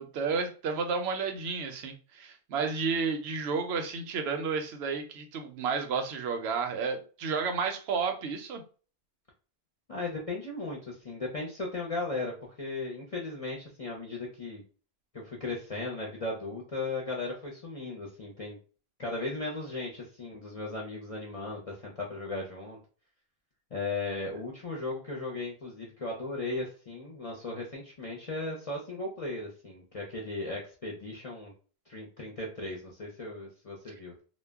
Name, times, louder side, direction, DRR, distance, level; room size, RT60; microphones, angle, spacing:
voice 1, 0.0-8.6, right 5 dB, 75° right, 0.8 m, -31 dB
voice 2, 9.9-12.3 12.6-14.6 15.1-18.6 19.0-22.8 23.7-31.5 31.9-34.2, left 2 dB, 45° left, 0.5 m, -36 dB
2.2 x 2.0 x 3.4 m
omnidirectional pair, 1.1 m